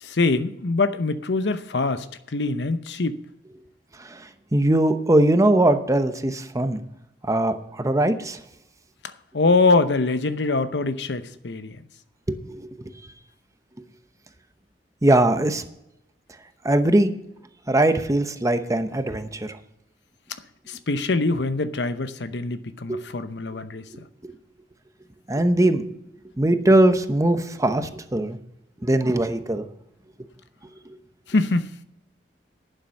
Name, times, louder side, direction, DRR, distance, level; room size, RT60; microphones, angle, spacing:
voice 1, 0.0-2.1 2.3-3.2 9.3-11.8 20.7-23.9 31.3-31.7, left 3 dB, 80° left, 0.8 m, -23 dB
voice 2, 4.0-6.8 7.2-8.4 12.3-12.7 15.0-15.7 16.6-17.1 17.7-19.5 22.9-23.0 24.2-24.3 25.3-25.8 26.4-28.4 28.8-29.6, right 1 dB, 20° right, 0.9 m, -21 dB
11.5 x 9.1 x 5.3 m
head